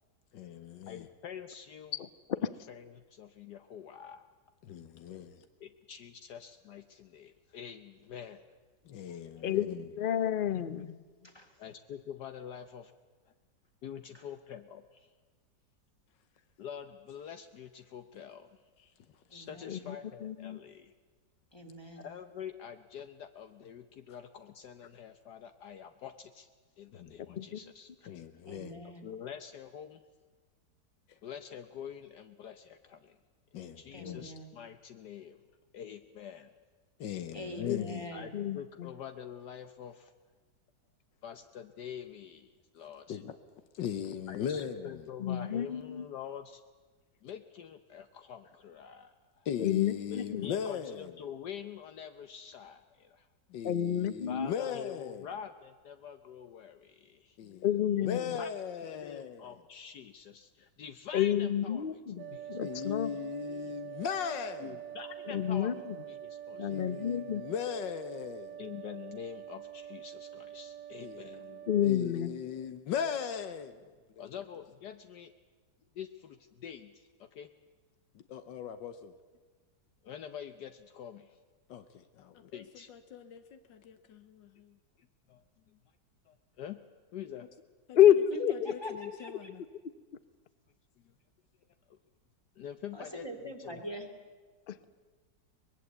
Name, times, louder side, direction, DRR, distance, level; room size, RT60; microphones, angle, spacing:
voice 1, 0.3-1.1 4.6-5.3 8.8-9.9 26.9-27.4 28.1-28.8 31.1-31.2 33.5-34.3 37.0-38.1 43.1-43.4 43.7-45.0 49.4-51.1 53.5-55.3 57.4-59.6 62.6-64.7 66.5-68.6 71.0-73.9 74.2-74.3 78.1-79.1 81.7-82.6 82.9-84.8 87.9-88.2 88.5-89.6, left 8 dB, 85° left, 1.6 m, -39 dB
voice 2, 0.9-2.0 2.3-4.2 5.6-8.4 11.6-12.9 13.8-15.1 16.6-18.5 19.3-20.9 22.0-26.5 26.8-28.1 29.0-30.0 31.2-33.2 33.8-35.4 35.7-36.5 38.1-40.1 41.2-43.2 44.3-46.6 47.2-49.5 50.1-53.3 54.3-57.4 58.0-58.5 58.8-61.8 62.3-62.8 64.6-65.7 66.1-66.7 68.6-71.4 74.2-75.3 75.9-77.5 80.0-81.4 82.5-82.9 85.0-85.4 86.3-86.8 87.1-87.5 91.0-91.1 91.9-92.0 92.6-93.3 93.6-93.8 94.7-94.8, left 8 dB, 70° left, 1.4 m, -46 dB
voice 3, 10.0-11.0 19.7-20.0 20.2-20.6 27.4-27.5 37.6-38.0 38.3-38.9 45.2-46.0 49.6-50.5 53.6-54.5 57.6-58.3 61.1-63.1 65.3-66.0 66.6-67.4 71.7-72.3 87.9-88.5 88.8-88.9 94.7-94.8, left 10 dB, 45° left, 0.6 m, -29 dB
voice 4, 11.2-11.6 14.1-14.2 19.3-19.8 21.5-22.2 28.5-29.1 33.9-34.5 37.3-38.4 88.6-89.5 92.9-94.1, equal, 15° left, 2.5 m, -45 dB
sound 1, 62.2-71.9, right 10 dB, 90° right, 1.6 m, -45 dB
23.5 x 20.0 x 8.1 m
omnidirectional pair, 1.9 m